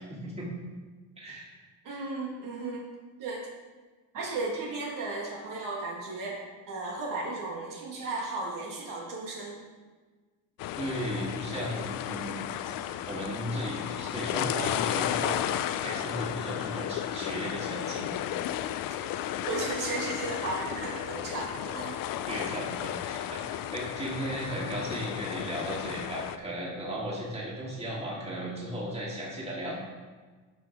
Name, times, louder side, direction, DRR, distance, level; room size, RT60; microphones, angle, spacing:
voice 1, 0.1-0.5 1.2-1.5 10.8-12.4 13.1-18.1 22.3-29.8, equal, 15° right, -4 dB, 2.3 m, -36 dB
voice 2, 1.8-2.8 3.2-3.5 4.1-6.4 6.7-9.6 19.5-22.0, right 3 dB, 60° right, -2 dB, 1.7 m, -35 dB
sound 1, 10.6-26.4, left 11 dB, 65° left, 0.5 m, -34 dB
12.0 x 5.7 x 3.5 m, 1.4 s
cardioid pair, 135°, 36 cm